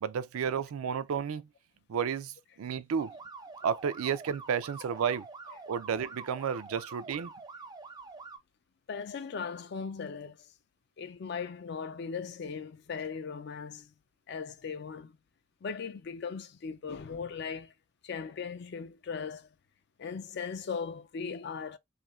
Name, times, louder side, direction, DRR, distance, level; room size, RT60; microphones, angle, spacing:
voice 1, 0.0-1.5 1.9-3.1 3.6-5.3 5.7-7.3, right 7 dB, 90° right, 0.4 m, -32 dB
sound 1, 3.0-8.4, right 4 dB, 20° right, 0.4 m, -47 dB
voice 2, 8.9-10.5 11.0-13.9 14.3-15.2 15.6-17.7 18.0-19.5 20.0-21.8, left 5 dB, 50° left, 0.4 m, -38 dB
2.6 x 2.4 x 3.0 m
head